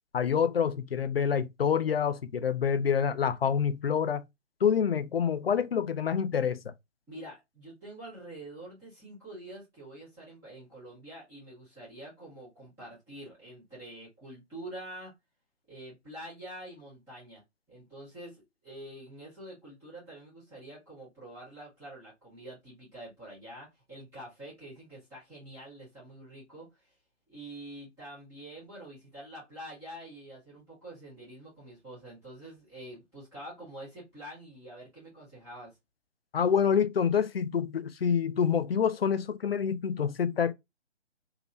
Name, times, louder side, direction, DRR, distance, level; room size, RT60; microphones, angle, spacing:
voice 1, 0.1-4.3 4.6-6.7 36.3-40.5, left 7 dB, 55° left, 0.5 m, -27 dB
voice 2, 7.1-15.1 15.7-17.4 17.7-27.0 27.3-35.8, right 1 dB, 10° right, 1.5 m, -46 dB
3.4 x 2.8 x 2.6 m
figure-of-eight pair, 145°, 36 cm